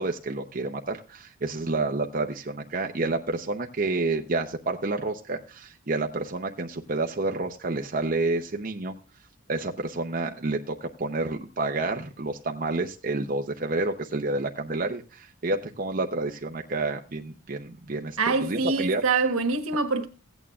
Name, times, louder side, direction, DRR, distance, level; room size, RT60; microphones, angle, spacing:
voice 1, 0.0-9.0 9.5-19.0, right 2 dB, 40° right, 0.7 m, -29 dB
voice 2, 18.2-20.1, right 4 dB, 80° right, 1.3 m, -25 dB
16.0 x 9.0 x 2.4 m
head